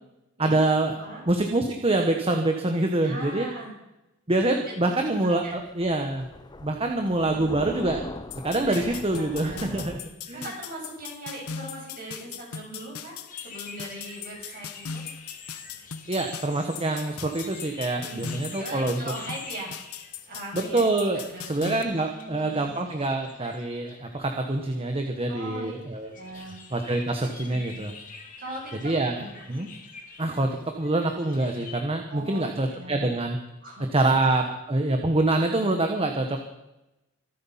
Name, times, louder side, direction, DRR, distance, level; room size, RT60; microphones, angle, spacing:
voice 1, 0.4-0.9 1.3-3.5 4.3-6.3 6.6-8.0 8.4-10.0 10.3-10.5 16.1-19.0 20.5-26.4 26.7-27.9 28.8-29.1 29.5-29.7 30.2-30.5 30.8-33.4 33.9-36.4, right 2 dB, 25° right, 4 dB, 1.2 m, -25 dB
voice 2, 3.0-3.7 4.7-4.9 5.2-5.6 8.7-8.8 9.1-10.0 10.3-15.0 17.9-18.2 18.6-19.7 20.3-20.8 21.1-21.5 22.1-22.7 25.3-25.8 26.1-26.6 27.4-27.8 28.4-29.3 32.1-33.1 33.6-34.2, right 1 dB, 40° right, -2 dB, 6.6 m, -40 dB
Thunder, 5.0-10.0, left 2 dB, 20° left, 0.6 m, -41 dB
sound 1, 8.3-21.8, left 7 dB, 85° left, 1.0 m, -39 dB
sound 2, 13.3-31.8, left 5 dB, 40° left, 2.7 m, -47 dB
25.0 x 8.4 x 5.7 m, 0.95 s
head